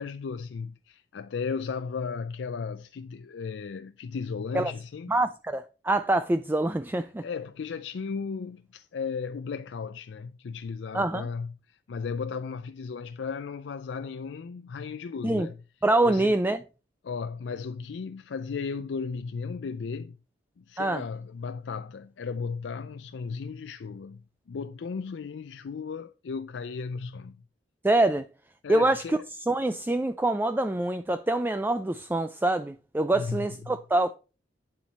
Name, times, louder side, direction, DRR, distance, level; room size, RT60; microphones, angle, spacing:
voice 1, 0.0-5.2 7.2-15.6 16.0-16.3 17.0-20.2 20.6-27.4 28.6-29.2 33.1-33.8, left 5 dB, 75° left, 0.4 m, -35 dB
voice 2, 5.1-7.2 10.9-11.3 15.2-15.5 15.8-16.6 20.8-21.0 27.8-28.2 28.7-29.2 29.5-34.1, right 2 dB, 10° right, 0.3 m, -25 dB
8.9 x 7.3 x 4.0 m
head